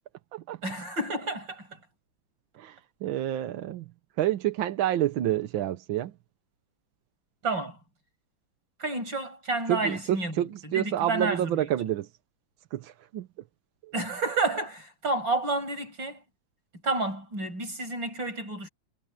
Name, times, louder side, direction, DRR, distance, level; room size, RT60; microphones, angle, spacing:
voice 1, 0.6-1.8 7.4-7.8 8.8-11.7 13.9-16.2 16.8-18.7, right 3 dB, 65° right, 6.8 m, -30 dB
voice 2, 2.5-3.8 4.2-6.1 9.7-12.1 12.7-13.3 13.8-13.9, right 12 dB, 85° right, 1.7 m, -29 dB
omnidirectional pair, 2.1 m